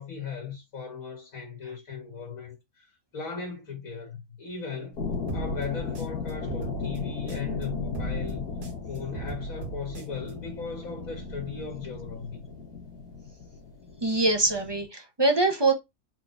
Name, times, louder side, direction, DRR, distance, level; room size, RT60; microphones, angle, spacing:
voice 1, 0.0-5.0 5.3-8.4 8.9-12.5, left 5 dB, 60° left, 1.8 m, -38 dB
sound 1, 4.9-14.8, left 4 dB, 80° left, 2.1 m, -36 dB
sound 2, 5.3-7.6 7.9-10.3, right 3 dB, 90° right, 2.1 m, -37 dB
voice 2, 14.0-15.7, right 2 dB, 25° right, 0.6 m, -23 dB
4.4 x 3.9 x 2.6 m
omnidirectional pair, 1.7 m